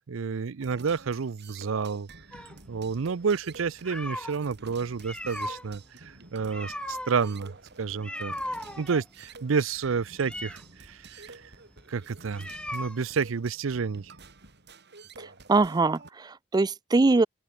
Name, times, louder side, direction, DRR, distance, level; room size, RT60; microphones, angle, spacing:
voice 1, 0.1-2.1 2.7-7.5 7.8-8.3 8.8-11.5 11.9-14.1, right 5 dB, 85° right, 0.5 m, -30 dB
sound 1, 0.6-16.1, right 4 dB, 60° right, 5.3 m, -50 dB
sound 2, 2.3-4.4 4.9-13.3, left 1 dB, 5° left, 4.3 m, -38 dB
voice 2, 15.2-17.3, right 3 dB, 20° right, 0.4 m, -23 dB
open air
head